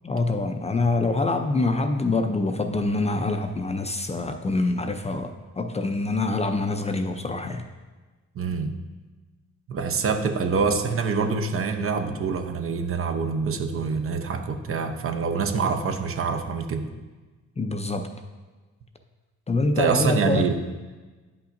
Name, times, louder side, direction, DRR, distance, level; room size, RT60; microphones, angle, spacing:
voice 1, 0.0-7.6 17.6-18.1 19.5-20.5, left 2 dB, 20° left, 6 dB, 0.5 m, -25 dB
voice 2, 8.4-8.7 9.7-16.9 19.8-20.6, right 5 dB, 45° right, 6 dB, 0.7 m, -25 dB
10.0 x 5.6 x 2.6 m, 1.3 s
cardioid pair, 90°, 30 cm